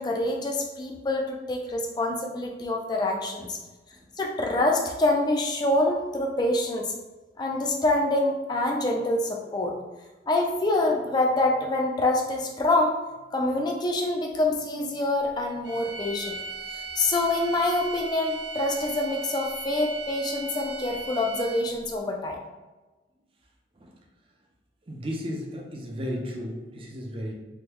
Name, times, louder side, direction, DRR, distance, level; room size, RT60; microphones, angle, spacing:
voice 1, 0.0-3.6 4.2-6.9 7.4-9.7 10.3-13.0 13.3-16.4 17.0-22.4, left 2 dB, 25° left, 1 dB, 0.3 m, -26 dB
sound 1, 15.6-21.9, right 4 dB, 80° right, 1.4 m, -38 dB
voice 2, 24.9-27.3, equal, 30° right, 0 dB, 0.5 m, -34 dB
3.5 x 2.3 x 2.9 m, 1.1 s
head